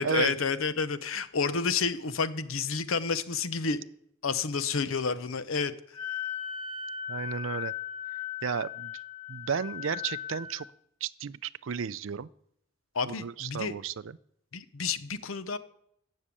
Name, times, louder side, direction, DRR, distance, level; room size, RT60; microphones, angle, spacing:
voice 1, 0.0-3.8 4.2-5.7 12.9-13.7 14.5-15.6, left 5 dB, 90° left, 14 dB, 0.9 m, -30 dB
Wind instrument woodwind instrument, 5.9-10.6, left 9 dB, 25° left, 2.1 m, -37 dB
voice 2, 7.1-7.7 8.4-8.9 9.3-10.7 11.0-12.3 13.1-14.2, right 6 dB, 70° right, 17 dB, 0.5 m, -33 dB
14.5 x 6.6 x 8.5 m, 0.72 s
head